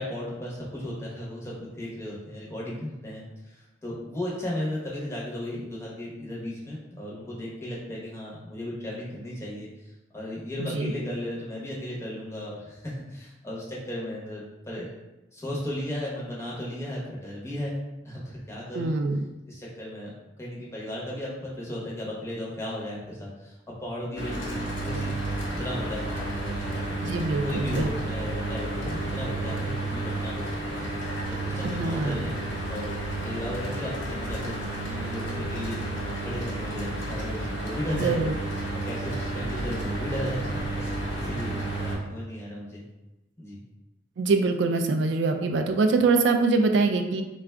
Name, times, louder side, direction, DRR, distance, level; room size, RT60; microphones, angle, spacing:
voice 1, 0.0-14.9 15.3-17.8 18.0-18.9 19.4-20.1 20.4-23.5 23.8-25.2 25.5-26.9 27.4-30.9 31.3-32.4 32.7-32.9 33.2-38.2 38.8-42.8 43.4-43.6, left 1 dB, 15° left, -6 dB, 0.8 m, -35 dB
voice 2, 10.6-10.9 18.8-19.2 27.0-27.9 31.6-32.2 37.9-38.3 44.2-47.2, right 3 dB, 65° right, 6 dB, 0.3 m, -24 dB
Mechanical fan, 24.2-42.0, right 2 dB, 75° left, 0.9 m, -31 dB
3.6 x 2.3 x 3.3 m, 1.0 s
head